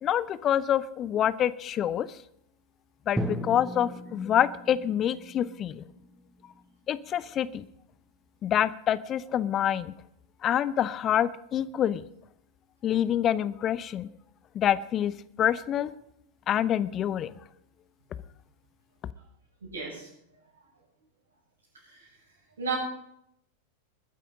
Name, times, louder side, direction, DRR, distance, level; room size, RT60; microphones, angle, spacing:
voice 1, 0.0-2.1 3.1-5.8 6.9-7.6 8.4-9.9 10.4-12.0 12.8-14.1 14.5-15.9 16.5-17.3, left 10 dB, 30° left, 18 dB, 0.7 m, -26 dB
Drum, 3.2-7.2, right 1 dB, 5° right, 1.5 m, -37 dB
voice 2, 19.6-20.1 21.8-22.1 22.6-22.8, right 5 dB, 70° right, -8 dB, 7.0 m, -33 dB
21.0 x 10.0 x 5.2 m, 0.75 s
figure-of-eight pair, 90°, 0 cm